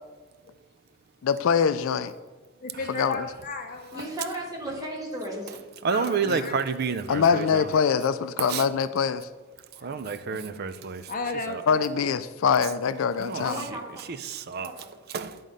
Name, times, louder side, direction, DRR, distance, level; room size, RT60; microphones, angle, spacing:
voice 1, 1.2-2.1 2.9-3.2 6.3-6.4 7.1-9.3 11.7-13.6, left 6 dB, 80° left, 0.4 m, -24 dB
voice 2, 2.6-4.1 5.9-6.6 7.3-7.8 9.8-10.2 10.5-10.6 11.1-11.9, left 3 dB, 45° left, 0.7 m, -35 dB
voice 3, 3.9-5.6 13.4-14.0 14.6-15.0, right 1 dB, 20° right, 1.8 m, -35 dB
voice 4, 5.8-7.7 8.4-8.7 9.8-11.0 11.5-11.6 13.2-13.4 14.1-14.7 15.1-15.3, right 5 dB, 50° right, 0.4 m, -29 dB
11.0 x 3.8 x 5.3 m
head